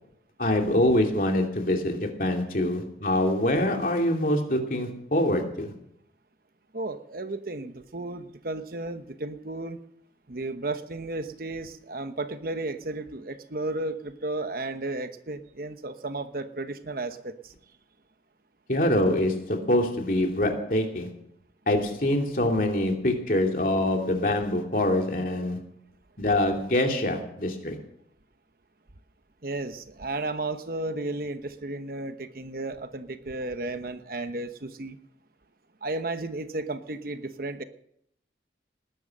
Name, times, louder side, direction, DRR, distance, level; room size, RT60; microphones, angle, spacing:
voice 1, 0.4-5.7 18.7-21.1 21.7-25.6 26.2-27.8, left 1 dB, 50° left, 2 dB, 2.8 m, -25 dB
voice 2, 6.7-9.8 10.3-17.5 29.4-35.0 35.8-37.6, right 2 dB, 55° right, 9 dB, 1.1 m, -33 dB
19.5 x 10.5 x 6.5 m, 0.74 s
head